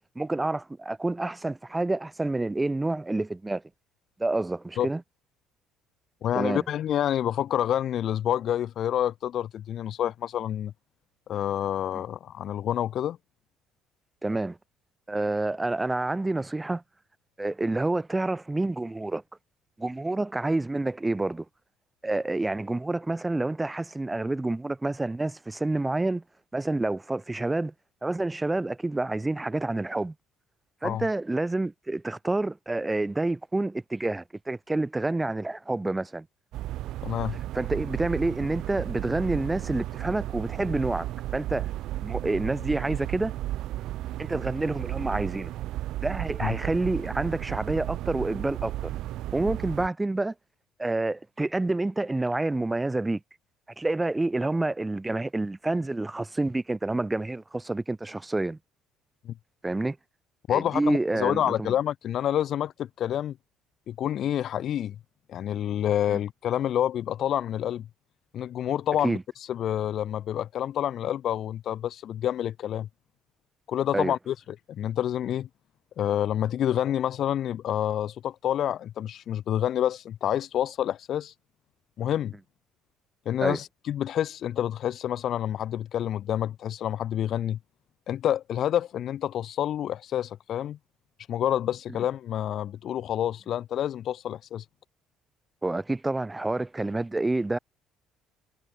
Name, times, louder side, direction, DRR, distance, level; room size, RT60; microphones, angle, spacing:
voice 1, 0.1-3.6 4.2-5.0 6.3-6.6 11.9-12.0 14.2-14.6 15.1-16.8 17.4-19.2 19.8-21.4 22.0-26.2 26.5-27.7 28.0-30.1 30.8-36.3 37.5-41.7 42.0-43.3 44.2-45.5 46.0-48.9 49.3-50.3 50.8-53.2 53.8-58.6 59.6-60.0 60.5-61.7 66.1-66.2 69.0-69.2 73.9-74.1 83.4-83.6 95.6-97.6, right 2 dB, 10° right, 5.1 m, -28 dB
voice 2, 6.2-10.7 11.3-13.2 30.8-31.0 37.0-37.4 46.4-46.6 59.3-59.4 60.5-63.4 63.9-65.0 65.3-67.9 68.3-69.2 69.5-72.9 73.7-74.3 74.7-75.5 76.0-81.3 82.0-82.3 83.3-87.6 88.1-90.8 91.3-94.6, left 10 dB, 50° left, 2.0 m, -28 dB
sound 1, 36.5-49.9, right 14 dB, 65° right, 1.5 m, -34 dB
cardioid pair, 145°, 0 cm